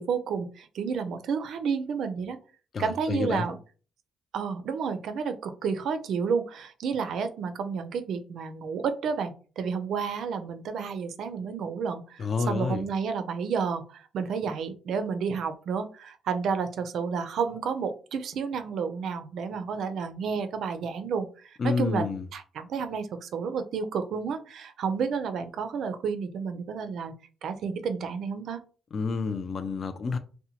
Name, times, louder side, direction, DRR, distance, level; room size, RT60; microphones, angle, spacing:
voice 1, 0.0-2.4 2.8-3.6 4.3-22.0 22.3-27.1 27.4-28.6, right 6 dB, 70° right, 0.4 m, -31 dB
voice 2, 2.7-3.5 12.2-12.8 21.6-22.2 28.9-30.2, left 4 dB, 45° left, 0.3 m, -29 dB
2.7 x 2.1 x 2.7 m
cardioid pair, 90°, 0 cm